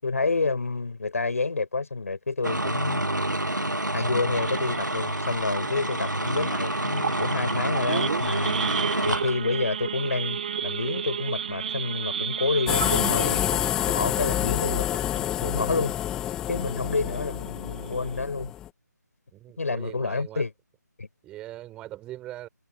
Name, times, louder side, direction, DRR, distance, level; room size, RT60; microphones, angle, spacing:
voice 1, 0.0-3.0 3.9-8.5 9.0-13.4 13.9-15.9 16.5-18.5 19.6-20.5 21.0-21.1, left 3 dB, 50° left, 6.1 m, -29 dB
sound 1, 2.4-9.4, right 1 dB, 85° right, 1.8 m, -28 dB
Idling / Accelerating revving vroom / Sawing, 4.3-15.4 15.8-16.0 16.3-16.4 16.8-17.1 17.6-17.7 17.9-18.2, right 8 dB, 30° right, 5.6 m, -33 dB
sound 2, 12.7-18.7, left 11 dB, 5° left, 1.4 m, -28 dB
voice 2, 19.3-20.5 21.2-22.5, right 15 dB, 10° right, 6.6 m, -41 dB
figure-of-eight pair, 155°, 10 cm